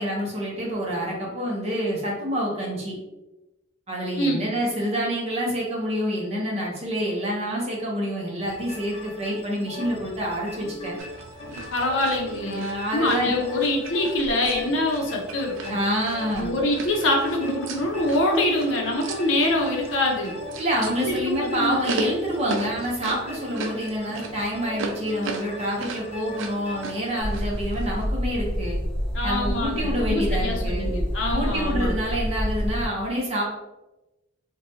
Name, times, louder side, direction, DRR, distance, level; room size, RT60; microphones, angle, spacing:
voice 1, 0.0-3.0 3.9-11.0 12.4-13.3 15.7-16.6 20.6-28.8 29.2-30.9 31.3-33.4, equal, 30° right, -3 dB, 0.7 m, -27 dB
sound 1, 8.4-27.2, left 2 dB, 30° left, 0.6 m, -41 dB
sound 2, 11.0-28.1, right 4 dB, 70° right, 0.3 m, -38 dB
voice 2, 11.7-15.8 16.3-20.4 21.0-21.8 29.1-31.9, left 1 dB, 70° left, 0 dB, 0.6 m, -25 dB
sound 3, 27.2-32.9, equal, 5° left, 1.1 m, -27 dB
2.7 x 2.2 x 2.7 m, 1.0 s
head